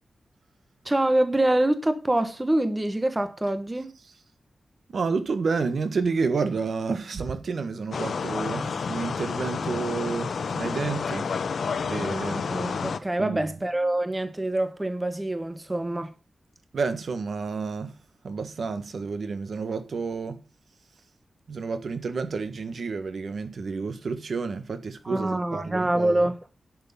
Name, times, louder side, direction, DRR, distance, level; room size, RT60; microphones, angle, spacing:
voice 1, 0.8-3.9 12.5-16.1 25.0-26.4, right 1 dB, 15° right, 1.1 m, -25 dB
voice 2, 4.9-11.3 11.8-12.5 13.2-13.5 16.7-18.0 18.2-20.4 21.5-26.2, right 4 dB, 60° right, 1.4 m, -30 dB
sound 1, 7.9-13.0, left 5 dB, 65° left, 1.0 m, -30 dB
11.0 x 6.4 x 7.0 m
wide cardioid pair, 175°, 0 cm